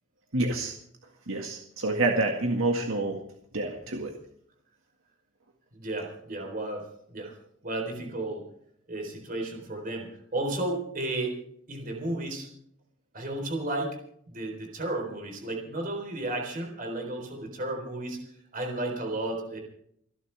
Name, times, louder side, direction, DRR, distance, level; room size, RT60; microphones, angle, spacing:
voice 1, 0.3-0.7 1.3-3.2 3.5-4.1, right 2 dB, 75° right, 2 dB, 1.9 m, -27 dB
voice 2, 5.7-7.3 7.6-8.4 8.9-10.1 10.3-11.4 11.7-12.5 13.1-14.0 14.3-18.2 18.5-19.6, right 2 dB, 40° right, 2 dB, 3.9 m, -33 dB
30.0 x 11.0 x 3.5 m, 0.68 s
head